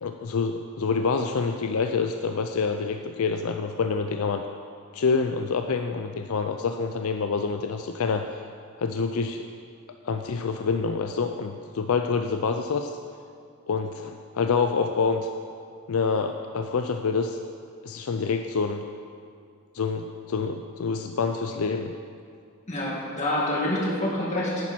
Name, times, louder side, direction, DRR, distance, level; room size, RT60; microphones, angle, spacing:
voice 1, 0.0-4.4 4.9-8.3 8.8-9.4 10.0-12.9 13.7-15.3 15.9-17.4 17.8-18.8 19.7-21.9, left 5 dB, 70° left, 6 dB, 0.4 m, -27 dB
voice 2, 22.7-24.7, left 1 dB, 30° left, -5 dB, 2.3 m, -27 dB
10.5 x 10.0 x 4.4 m, 2.3 s
head